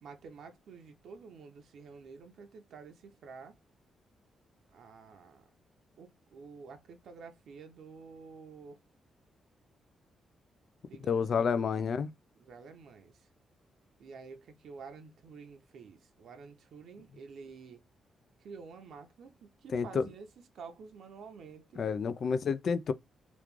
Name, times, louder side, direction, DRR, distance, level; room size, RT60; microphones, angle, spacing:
voice 1, 0.0-3.6 4.7-5.5 6.0-8.8 10.9-11.8 12.4-13.3 14.0-17.8 18.4-20.3 20.5-21.9, right 5 dB, 75° right, 0.8 m, -50 dB
voice 2, 11.1-12.1 19.7-20.1 21.8-22.9, left 6 dB, 55° left, 0.4 m, -29 dB
3.0 x 2.4 x 3.5 m
cardioid pair, 120°, 0 cm